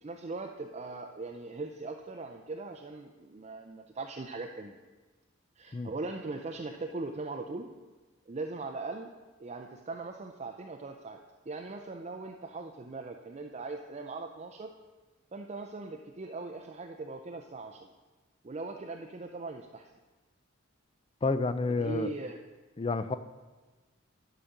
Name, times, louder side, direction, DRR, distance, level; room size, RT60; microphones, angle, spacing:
voice 1, 0.0-4.8 5.6-7.7 8.3-9.1 9.4-11.2 11.5-14.7 15.3-17.9 18.4-19.9 21.7-22.4, right 3 dB, 35° right, 4 dB, 0.5 m, -40 dB
voice 2, 21.2-22.1 22.8-23.2, left 3 dB, 25° left, 12 dB, 0.4 m, -29 dB
11.5 x 5.0 x 6.6 m, 1.3 s
head